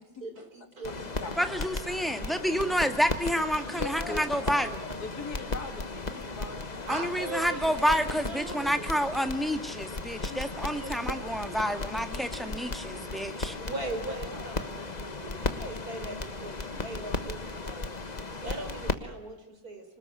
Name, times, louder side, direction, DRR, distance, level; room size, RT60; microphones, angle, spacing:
voice 1, 0.2-1.4 3.5-5.2 6.9-8.9 10.2-11.6 13.6-17.9 18.4-20.0, right 1 dB, 60° right, 6 dB, 5.1 m, -40 dB
sound 1, 0.8-18.9, left 3 dB, 25° left, 1.4 m, -36 dB
voice 2, 0.9-1.7 3.7-4.2 5.0-6.9 11.9-12.7, left 3 dB, 65° left, 6 dB, 3.4 m, -41 dB
voice 3, 1.4-4.8 6.9-13.5, equal, ahead, 7 dB, 1.8 m, -29 dB
26.0 x 20.0 x 9.7 m, 0.98 s
omnidirectional pair, 1.8 m